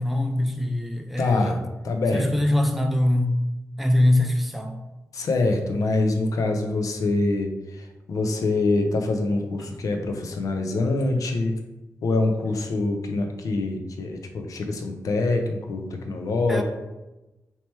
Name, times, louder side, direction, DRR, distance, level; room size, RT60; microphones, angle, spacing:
voice 1, 0.0-1.6 2.1-3.5 3.8-4.8 16.5-16.6, left 1 dB, ahead, 4 dB, 0.4 m, -23 dB
voice 2, 1.2-1.6 1.8-2.3 5.1-11.6 12.0-16.6, left 2 dB, 75° left, 4 dB, 0.6 m, -25 dB
4.3 x 2.9 x 3.2 m, 1.0 s
wide cardioid pair, 120°, 6 cm